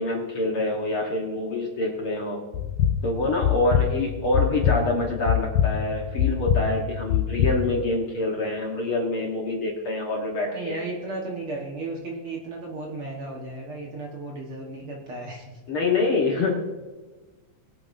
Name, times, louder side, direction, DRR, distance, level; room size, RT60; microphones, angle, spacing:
voice 1, 0.0-2.4 3.0-10.8 15.7-16.5, left 2 dB, 55° left, -1 dB, 1.8 m, -26 dB
sound 1, 2.5-7.8, left 10 dB, 80° left, 2.2 m, -24 dB
voice 2, 10.5-15.6, right 2 dB, 50° right, -1 dB, 1.9 m, -34 dB
21.0 x 8.5 x 2.6 m, 1.3 s
omnidirectional pair, 3.7 m